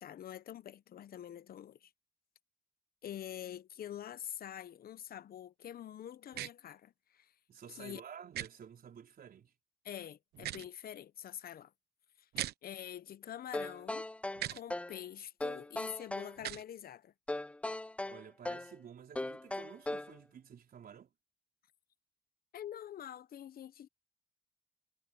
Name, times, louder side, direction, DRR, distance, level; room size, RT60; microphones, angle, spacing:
voice 1, 0.0-1.9 3.0-7.3 7.8-8.0 9.8-11.7 12.2-14.1 14.5-17.1 22.5-23.9, left 10 dB, 70° left, 1.0 m, -46 dB
sound 1, 6.3-6.5 8.3-8.5 10.3-10.7 12.3-12.5 14.3-14.6 16.4-16.6, right 13 dB, 85° right, 1.0 m, -39 dB
voice 2, 7.5-9.5 18.0-21.1, right 8 dB, 65° right, 4.1 m, -52 dB
sound 2, 13.5-15.0 15.4-16.4 17.3-18.7 19.2-20.2, left 2 dB, 10° left, 0.3 m, -39 dB
supercardioid pair, 50°, 16 cm